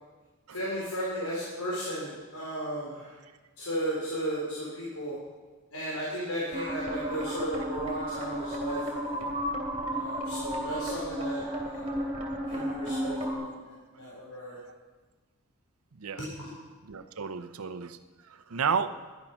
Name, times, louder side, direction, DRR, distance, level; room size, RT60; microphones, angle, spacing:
voice 1, 0.5-3.1 3.6-5.1 5.7-9.3 9.9-12.0 12.5-14.6 16.4-16.5, equal, 85° left, -6 dB, 3.9 m, -35 dB
sound 1, 6.5-13.3, right 1 dB, 30° right, 2.8 m, -33 dB
voice 2, 16.8-18.0 18.2-19.0, right 6 dB, 80° right, 10 dB, 0.7 m, -32 dB
13.0 x 11.5 x 5.8 m, 1.3 s
head